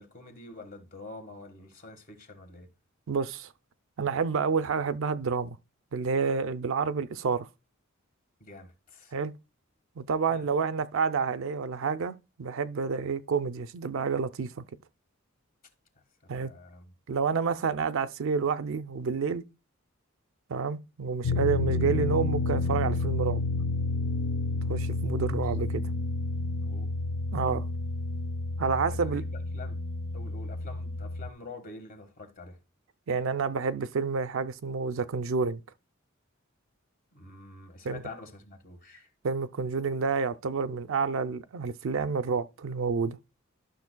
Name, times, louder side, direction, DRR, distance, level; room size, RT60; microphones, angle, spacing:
voice 1, 0.0-2.7 8.4-9.1 10.3-10.5 16.2-16.9 25.1-25.3 26.6-26.9 28.8-29.2 29.5-29.8 30.1-32.6 37.1-39.1, left 3 dB, 40° left, 1.5 m, -46 dB
voice 2, 3.1-3.5 4.0-5.6 5.9-7.5 9.1-9.3 10.0-14.5 16.3-16.5 17.1-19.4 20.5-23.4 24.7-25.9 27.3-27.6 28.6-29.2 33.1-35.6 37.8-38.0 39.2-43.2, right 5 dB, 65° right, 0.5 m, -29 dB
sound 1, 21.2-31.3, left 2 dB, 80° left, 0.5 m, -30 dB
12.0 x 6.3 x 2.2 m
head